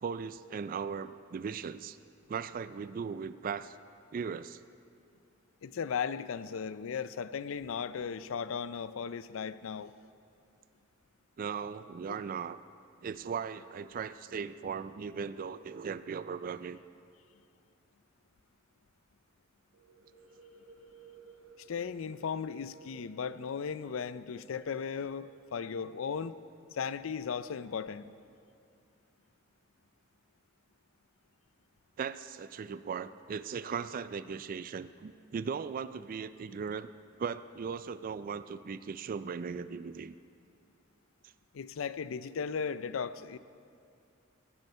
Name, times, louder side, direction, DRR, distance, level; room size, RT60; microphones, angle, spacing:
voice 1, 0.0-2.0 2.3-3.8 4.1-4.6 11.4-12.6 13.0-16.8 32.0-36.9 37.2-40.1, right 6 dB, 45° right, 14 dB, 0.3 m, -38 dB
voice 2, 5.6-9.9 21.7-26.4 26.7-28.1 41.5-43.4, left 6 dB, 80° left, 15 dB, 0.4 m, -36 dB
sound 1, 19.7-27.3, right 5 dB, 80° right, 1.0 m, -58 dB
16.5 x 10.5 x 5.5 m, 2.4 s
head